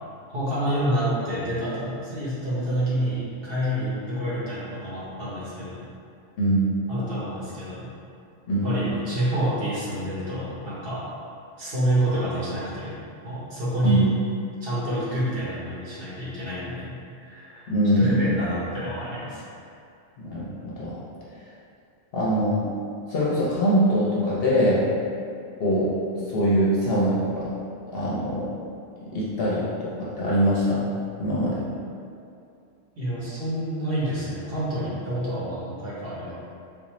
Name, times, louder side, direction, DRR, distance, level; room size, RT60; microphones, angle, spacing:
voice 1, 0.3-5.9 6.9-7.9 8.6-11.0 11.6-12.9 13.2-14.1 14.6-17.0 17.2-17.7 18.0-19.4 33.0-36.3, right 1 dB, 50° right, -8 dB, 1.0 m, -28 dB
voice 2, 6.4-6.7 8.5-8.9 13.8-14.1 17.7-18.3 20.2-21.0 22.1-22.7 23.1-24.9 25.6-27.5 27.9-28.5 29.1-30.9 31.2-31.7, equal, 60° left, -7 dB, 0.7 m, -23 dB
3.6 x 2.6 x 3.0 m, 2.5 s
omnidirectional pair, 1.3 m